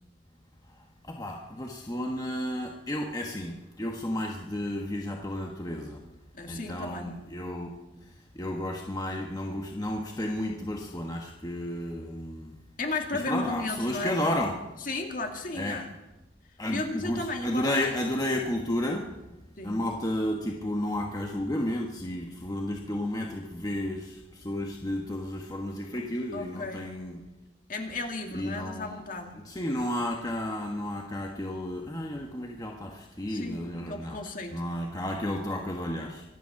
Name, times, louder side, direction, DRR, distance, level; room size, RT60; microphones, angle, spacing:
voice 1, 1.1-6.0 6.5-7.7 8.3-12.5 13.1-14.5 15.5-15.8 16.6-19.1 19.6-27.2 28.3-29.0 29.5-34.2 34.5-36.2, left 1 dB, 20° left, 1 dB, 1.3 m, -32 dB
voice 2, 6.3-7.1 12.8-14.5 14.8-15.9 16.7-17.9 19.6-19.8 26.3-26.9 27.7-29.4 33.3-34.7, left 2 dB, 45° left, 3 dB, 2.1 m, -34 dB
24.5 x 9.3 x 5.9 m, 1.0 s
head